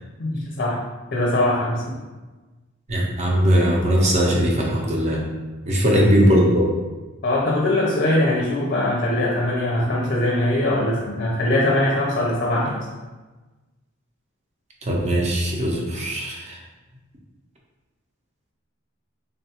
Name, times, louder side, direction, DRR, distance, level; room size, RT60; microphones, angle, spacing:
voice 1, 0.2-0.8 1.1-1.8 5.9-6.0 7.2-12.9, left 1 dB, 45° left, -2 dB, 0.5 m, -21 dB
voice 2, 2.9-5.2 5.6-6.7 14.8-16.6, equal, 35° right, -2 dB, 0.6 m, -19 dB
3.4 x 2.3 x 2.8 m, 1.2 s
head